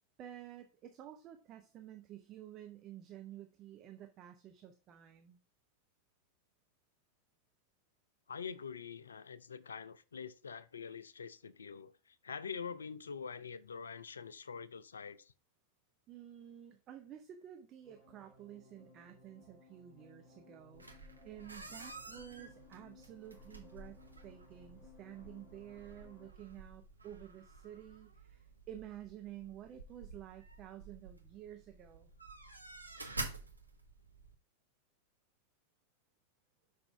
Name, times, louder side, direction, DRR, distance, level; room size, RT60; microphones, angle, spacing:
voice 1, 0.2-5.4 16.1-32.1, right 11 dB, 35° right, 0.7 m, -51 dB
voice 2, 8.3-15.3, left 6 dB, 70° left, 0.4 m, -45 dB
sound 1, 17.8-26.3, left 3 dB, 15° left, 3.8 m, -61 dB
sound 2, 20.7-34.3, right 3 dB, 80° right, 0.9 m, -50 dB
6.0 x 5.3 x 3.4 m
figure-of-eight pair, 90°, 0 cm